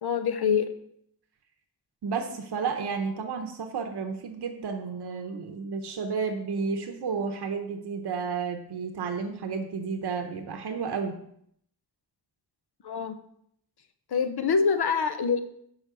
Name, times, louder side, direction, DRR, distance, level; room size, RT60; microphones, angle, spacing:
voice 1, 0.0-0.7 12.8-13.2 14.1-15.4, left 6 dB, 70° left, 10 dB, 0.8 m, -25 dB
voice 2, 2.0-11.2, right 5 dB, 75° right, 5 dB, 0.9 m, -32 dB
5.7 x 5.0 x 6.7 m, 0.70 s
cardioid pair, 65°, 40 cm